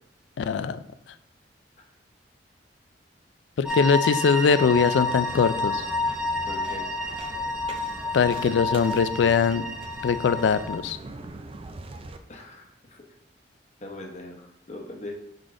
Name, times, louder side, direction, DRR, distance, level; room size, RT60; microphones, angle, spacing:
voice 1, 0.4-0.8 3.6-5.8 8.1-9.6 10.0-11.0, left 5 dB, 70° left, 14 dB, 0.3 m, -22 dB
sound 1, 3.6-10.8, left 2 dB, 5° right, 0.7 m, -29 dB
sound 2, 4.6-12.2, right 2 dB, 30° right, 0.4 m, -42 dB
voice 2, 6.5-6.8 12.3-12.6 12.9-13.0 13.8-15.2, left 2 dB, 40° left, 1 dB, 0.9 m, -40 dB
6.4 x 4.0 x 3.7 m, 0.77 s
head